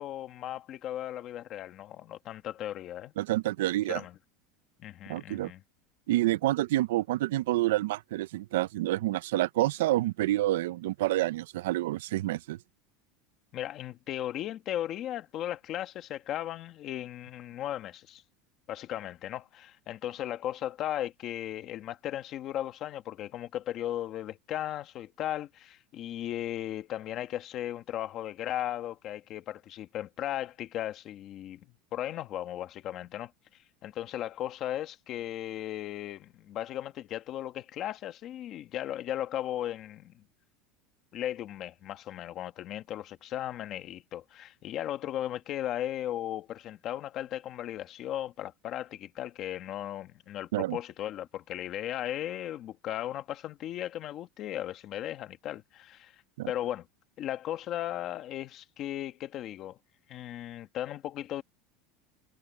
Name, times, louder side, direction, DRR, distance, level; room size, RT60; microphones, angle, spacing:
voice 1, 0.0-3.1 3.9-4.1 4.8-5.6 13.5-18.2 18.7-31.6 31.9-33.3 33.8-40.2 41.1-56.1 56.5-56.9 57.2-59.8 60.1-61.4, left 12 dB, 30° left, 1.4 m, -36 dB
voice 2, 3.2-4.0 5.1-5.5 6.1-12.6 50.5-50.8 56.4-56.5, right 16 dB, 85° right, 0.5 m, -28 dB
supercardioid pair, 180°, 0 cm